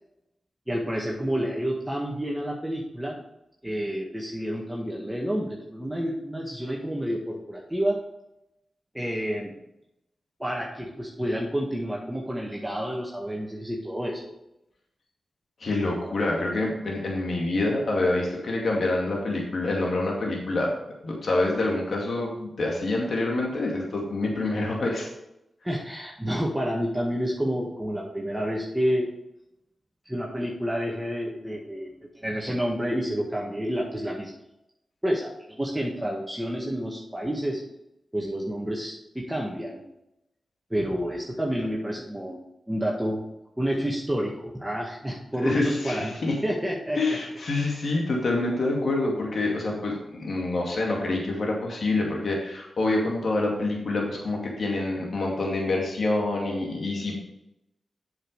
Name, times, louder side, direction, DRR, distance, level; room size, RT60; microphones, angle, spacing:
voice 1, 0.7-3.2 3.6-8.0 8.9-9.5 10.4-14.3 25.6-29.1 30.1-34.3 35.0-37.6 38.1-39.8 40.7-42.4 42.7-43.2 43.6-46.1 46.4-47.2, equal, 10° right, -3 dB, 1.8 m, -29 dB
voice 2, 15.6-20.7 21.0-25.1 45.4-46.4 47.0-57.2, left 2 dB, 70° left, -1 dB, 2.3 m, -26 dB
7.6 x 6.4 x 5.0 m, 0.86 s
cardioid pair, 40°, 0 cm